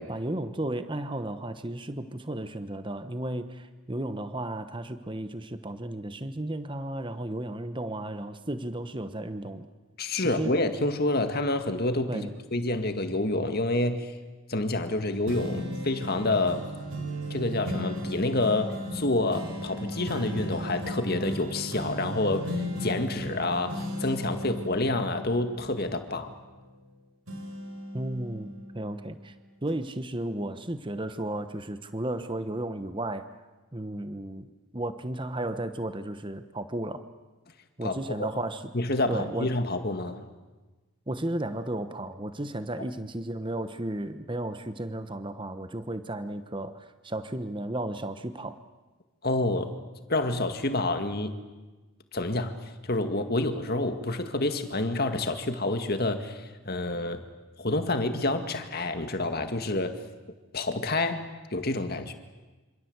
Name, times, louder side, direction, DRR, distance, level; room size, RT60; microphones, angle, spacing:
voice 1, 0.0-9.7 10.2-10.5 12.1-12.3 27.9-29.3 29.6-33.3 33.7-37.0 37.8-38.7 39.1-39.5 41.1-48.6, right 1 dB, 20° right, 10 dB, 1.0 m, -34 dB
voice 2, 10.0-14.1 14.5-16.6 17.3-26.3 37.8-38.3 38.7-40.2 49.2-49.7 50.1-51.3 52.1-57.2 57.6-60.0 60.5-62.1, left 2 dB, 45° left, 7 dB, 2.0 m, -28 dB
sound 1, 15.2-26.9 27.3-29.2 29.7-29.8, equal, 80° right, 5.6 m, -36 dB
26.5 x 26.5 x 8.1 m, 1.2 s
head